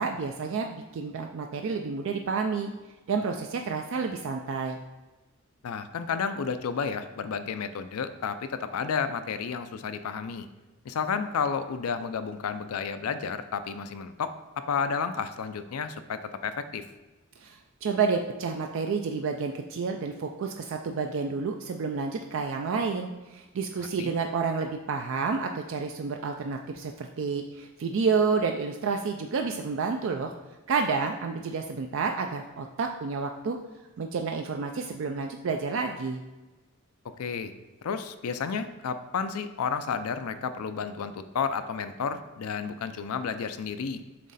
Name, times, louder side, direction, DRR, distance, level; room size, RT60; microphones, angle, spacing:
voice 1, 0.0-2.7 3.1-4.8 17.4-30.3 30.7-33.6 34.0-36.2, right 5 dB, 60° right, 4 dB, 0.3 m, -30 dB
voice 2, 5.6-10.5 10.9-14.3 14.7-16.8 23.8-24.1 37.2-37.5 37.8-44.0, left 6 dB, 80° left, 10 dB, 0.4 m, -31 dB
7.5 x 3.1 x 4.1 m, 1.1 s
head